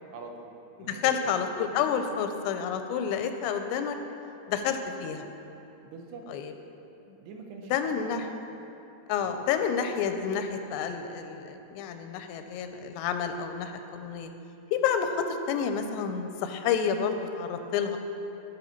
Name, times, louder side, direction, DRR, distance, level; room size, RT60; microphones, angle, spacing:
voice 1, 0.1-1.3 5.8-6.2 7.2-8.1 9.2-9.3, right 3 dB, 80° right, 2 dB, 2.8 m, -44 dB
voice 2, 0.8-4.0 4.5-5.3 6.3-6.5 7.7-8.3 9.1-14.3 14.7-18.0, left 7 dB, 85° left, 7 dB, 2.8 m, -29 dB
14.5 x 5.6 x 4.5 m, 2.8 s
omnidirectional pair, 4.9 m